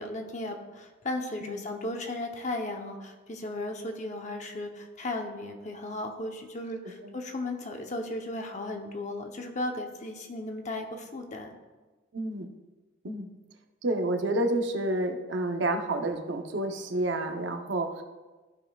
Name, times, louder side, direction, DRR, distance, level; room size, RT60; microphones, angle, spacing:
voice 1, 0.0-11.5, left 2 dB, 40° left, 3 dB, 0.8 m, -35 dB
voice 2, 12.1-12.5 13.0-13.3 13.8-18.0, right 1 dB, 70° right, 5 dB, 0.8 m, -29 dB
13.5 x 5.4 x 2.4 m, 1.2 s
head